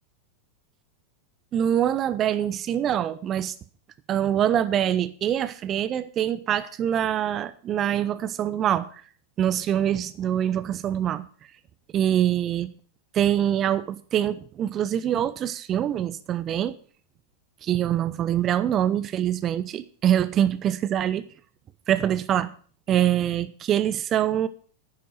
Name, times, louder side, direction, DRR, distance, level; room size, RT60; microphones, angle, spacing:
voice 1, 1.5-3.5 4.1-8.9 9.4-11.3 11.9-12.7 13.1-16.8 17.6-21.2 21.9-22.5 22.9-24.5, right 10 dB, 30° right, 14 dB, 0.8 m, -24 dB
10.0 x 6.9 x 7.5 m, 0.43 s
figure-of-eight pair, 90°, 0 cm